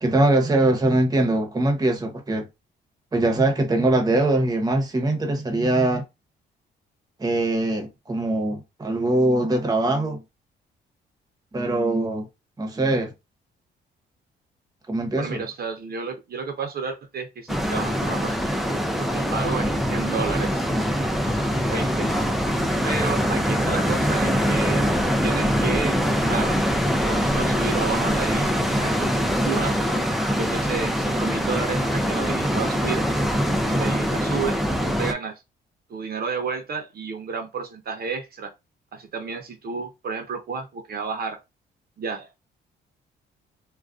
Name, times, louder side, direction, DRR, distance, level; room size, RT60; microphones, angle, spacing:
voice 1, 0.0-2.5 3.1-6.0 7.2-10.2 11.5-12.3 12.6-13.1 14.9-15.4, right 2 dB, 20° right, 0.8 m, -22 dB
voice 2, 15.1-18.4 18.7-20.7 21.7-22.1 22.8-24.9 25.2-26.0 26.3-26.6 27.0-29.8 30.3-33.0 33.6-34.6 34.8-35.4 35.9-38.5 38.9-41.4 42.0-42.3, right 5 dB, 50° right, 0.7 m, -31 dB
sound 1, 17.5-35.1, equal, ahead, 0.4 m, -23 dB
2.4 x 2.2 x 2.4 m
cardioid pair, 90°, 20 cm